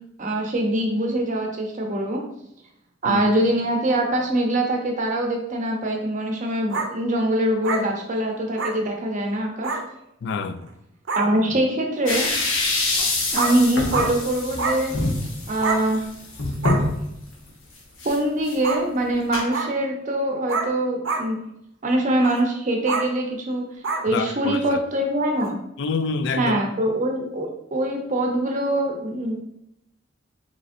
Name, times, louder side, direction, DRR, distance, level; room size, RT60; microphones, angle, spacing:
voice 1, 0.2-2.2 3.0-9.7 11.2-12.3 13.3-15.0 15.5-16.0 18.0-21.4 21.8-23.6 24.0-25.6 26.4-29.4, right 1 dB, 40° right, 0.6 m, -23 dB
sound 1, 6.7-6.9 7.6-7.8 8.6-8.7 9.6-9.8 10.7-10.8 11.1-11.2 12.9-13.0 13.4-13.5 13.9-14.1 14.6-14.8 15.6-15.8 16.6-16.8 18.6-18.8 19.5-19.7 20.5-20.7 21.0-21.2 22.2-22.4 22.9-23.1 23.8-24.0 25.4-25.5, right 3 dB, 75° right, 0.6 m, -26 dB
voice 2, 10.2-10.7 24.1-24.8 25.8-26.5, left 4 dB, 65° left, 0.3 m, -27 dB
sound 2, 12.1-17.0 17.5-17.6 18.0-18.2 18.4-18.6 19.3-19.4, left 2 dB, 85° left, 1.0 m, -25 dB
5.1 x 3.1 x 2.5 m
head